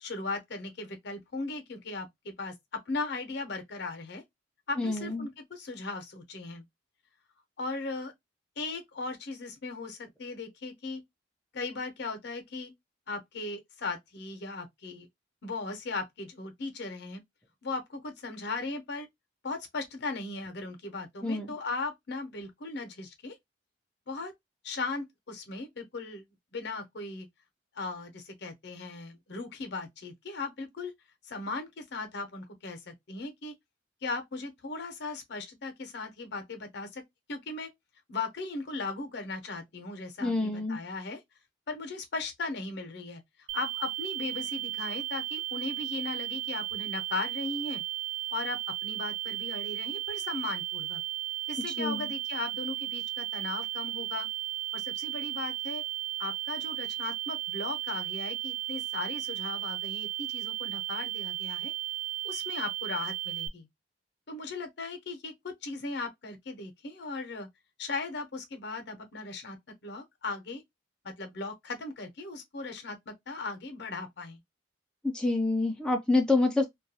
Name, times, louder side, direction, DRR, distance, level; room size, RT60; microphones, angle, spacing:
voice 1, 0.0-4.2 4.7-6.6 7.6-8.1 8.6-11.0 11.5-12.7 13.1-15.1 15.4-17.2 17.6-19.1 19.4-23.4 24.1-24.3 24.6-26.2 26.5-27.3 27.7-30.9 31.2-33.5 34.0-37.0 37.3-37.7 38.1-41.2 41.7-47.8 48.3-51.0 51.5-54.3 54.7-55.8 56.2-61.7 62.2-63.7 64.3-67.5 67.8-69.6 69.8-70.6 71.0-74.4, left 3 dB, 60° left, 0.7 m, -37 dB
voice 2, 4.8-5.3 21.2-21.5 40.2-40.8 51.8-52.1 75.0-76.7, left 2 dB, 5° left, 0.4 m, -27 dB
sound 1, 43.5-63.5, right 15 dB, 75° right, 0.4 m, -35 dB
2.3 x 2.3 x 2.7 m
head